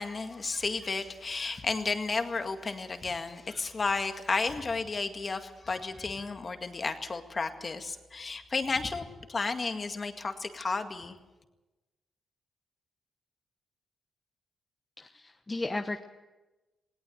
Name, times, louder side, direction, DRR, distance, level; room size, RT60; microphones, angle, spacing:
voice 1, 0.0-11.2, left 4 dB, 40° left, 7 dB, 2.0 m, -32 dB
voice 2, 15.0-16.0, left 2 dB, 25° left, 6 dB, 1.0 m, -35 dB
19.0 x 17.5 x 8.0 m, 1.1 s
cardioid pair, 70°, 0 cm